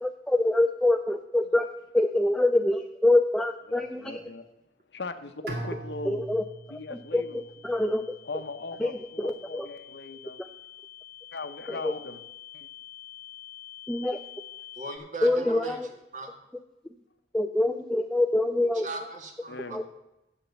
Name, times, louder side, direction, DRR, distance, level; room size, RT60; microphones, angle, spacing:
voice 1, 0.0-1.7 1.9-4.2 6.0-6.4 6.7-8.1 8.8-8.9 9.2-9.7 11.7-11.9 13.9-14.2 15.2-15.9 17.3-18.9 19.7-19.8, left 2 dB, 5° left, 6 dB, 0.3 m, -25 dB
voice 2, 3.7-4.4 4.9-6.2 6.7-7.4 8.2-10.4 11.3-12.2 12.5-12.7 19.5-19.8, left 3 dB, 80° left, 10 dB, 0.8 m, -39 dB
Bowed string instrument, 5.5-8.5, right 1 dB, 70° right, 2.1 m, -41 dB
sound 1, 6.1-15.0, left 12 dB, 50° left, 0.8 m, -48 dB
voice 3, 14.8-15.8 16.1-16.3 18.8-19.9, right 3 dB, 45° right, 4 dB, 1.6 m, -38 dB
8.3 x 7.3 x 6.9 m, 0.93 s
head